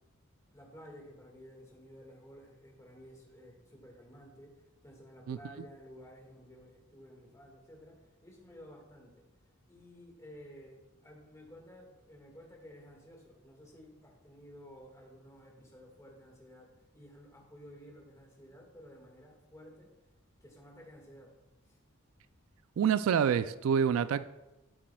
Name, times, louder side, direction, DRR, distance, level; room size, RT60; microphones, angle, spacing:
voice 1, 0.5-9.3 9.7-19.9 20.4-21.3 21.6-21.8, equal, 15° left, 1.7 m, -53 dB
voice 2, 22.8-24.3, right 7 dB, 75° right, 0.3 m, -27 dB
13.0 x 7.5 x 2.3 m
head